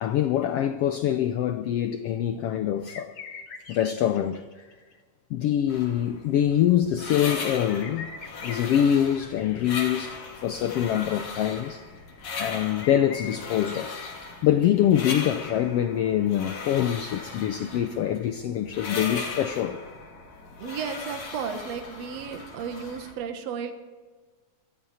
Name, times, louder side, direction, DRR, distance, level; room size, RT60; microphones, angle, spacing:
voice 1, 0.0-3.1 3.7-4.6 5.3-8.1 8.4-11.8 12.4-14.0 14.4-19.8, left 10 dB, 85° left, 1.3 m, -25 dB
sound 1, 2.3-2.4 2.9-4.9 7.0-10.2 12.8-15.0 16.2-16.3, left 5 dB, 45° left, 1.8 m, -43 dB
sound 2, 5.7-23.1, left 4 dB, 65° left, 3.9 m, -38 dB
voice 2, 20.6-23.7, right 7 dB, 60° right, 2.4 m, -34 dB
23.0 x 15.0 x 4.3 m
omnidirectional pair, 3.6 m